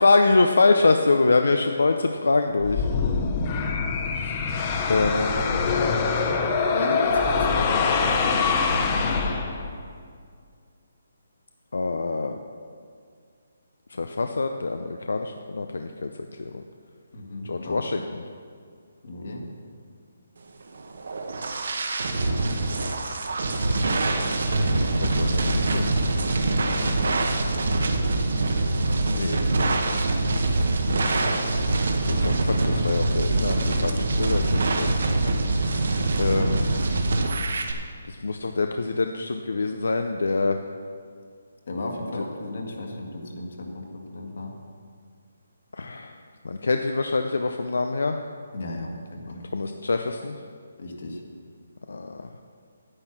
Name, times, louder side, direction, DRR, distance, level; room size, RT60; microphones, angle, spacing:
voice 1, 0.0-2.8 4.2-5.3 11.7-12.4 13.9-16.1 16.4-16.6 17.4-18.2 24.6-26.0 29.1-29.4 32.0-34.9 36.2-36.7 38.1-40.6 42.2-42.3 45.7-46.2 46.4-48.2 49.5-50.4 51.9-52.3, left 3 dB, 85° left, 6 dB, 0.6 m, -25 dB
sound 1, 2.6-9.8, left 5 dB, 20° left, 0.6 m, -24 dB
voice 2, 5.1-5.8 6.7-9.4 17.1-17.8 19.0-19.4 26.7-26.9 30.6-30.7 41.7-44.5 48.5-49.4 50.8-51.2, left 2 dB, 55° left, 1 dB, 1.8 m, -34 dB
sound 2, 20.8-37.7, right 2 dB, 60° right, 1.1 m, -24 dB
9.8 x 8.9 x 6.1 m, 2.1 s
hypercardioid pair, 175°, 0 cm